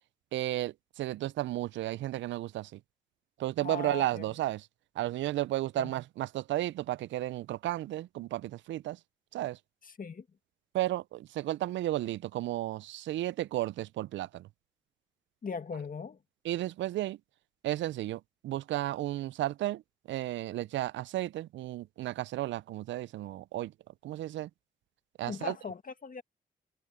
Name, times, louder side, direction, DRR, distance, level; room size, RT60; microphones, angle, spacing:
voice 1, 0.3-2.8 3.4-4.7 5.0-9.0 9.3-9.6 10.7-14.5 16.4-17.2 17.6-19.8 20.1-23.7 24.0-24.5 25.2-25.5, right 15 dB, 80° right, 0.5 m, -33 dB
voice 2, 3.6-4.2 5.8-5.9 9.8-10.2 15.4-16.2 25.3-26.2, left 5 dB, 45° left, 1.9 m, -39 dB
supercardioid pair, 50°, 19 cm